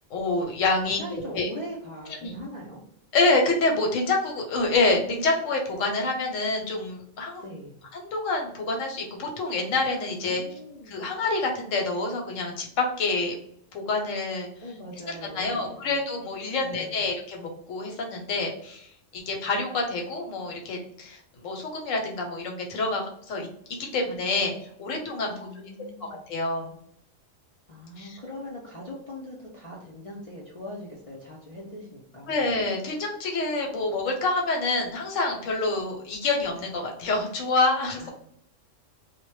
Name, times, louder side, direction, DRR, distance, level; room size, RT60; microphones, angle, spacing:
voice 1, 0.1-1.5 2.2-2.4 3.1-7.4 7.9-10.4 10.9-13.3 13.7-14.5 15.3-23.5 23.9-25.3 26.3-26.8 28.0-28.2 32.3-38.1, left 3 dB, 80° left, 2 dB, 1.0 m, -27 dB
voice 2, 0.8-2.8 7.4-7.8 10.2-11.1 14.6-15.9 16.6-17.1 25.3-26.2 27.7-32.5 38.0-38.1, left 1 dB, 65° left, -4 dB, 0.3 m, -41 dB
2.1 x 2.1 x 3.0 m, 0.70 s
omnidirectional pair, 1.3 m